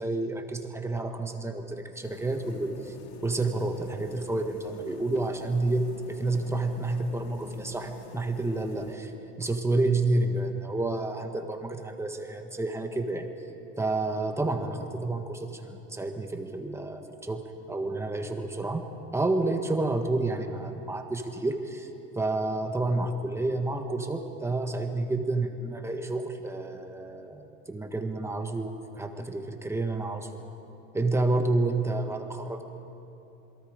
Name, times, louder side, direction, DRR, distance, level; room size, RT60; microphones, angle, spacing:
voice 1, 0.0-2.9 3.2-9.1 9.4-13.3 13.8-18.9 19.1-21.9 22.1-30.3 30.9-32.6, right 2 dB, 10° right, 5 dB, 1.5 m, -29 dB
sound 1, 2.0-9.0, left 6 dB, 80° left, 2.2 m, -47 dB
28.0 x 22.5 x 5.1 m, 2.9 s
cardioid pair, 140°, 31 cm